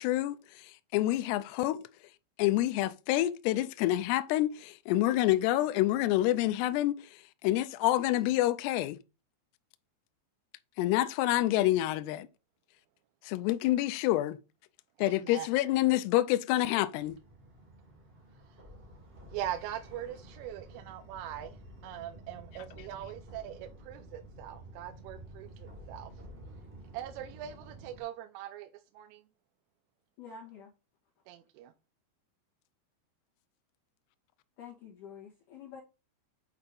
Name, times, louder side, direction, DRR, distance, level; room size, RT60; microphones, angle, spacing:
voice 1, 0.0-1.9 2.4-7.0 7.4-9.0 10.8-12.3 13.2-14.4 15.0-17.2, left 15 dB, 85° left, 2.3 m, -27 dB
voice 2, 15.0-15.5 19.3-26.1 26.9-28.7 28.9-29.2 31.3-31.7, right 11 dB, 85° right, 2.8 m, -41 dB
sound 1, 17.0-28.0, right 1 dB, 50° right, 0.6 m, -51 dB
voice 3, 30.2-30.7 34.6-35.8, left 6 dB, 60° left, 2.3 m, -48 dB
8.2 x 2.9 x 5.3 m
omnidirectional pair, 5.3 m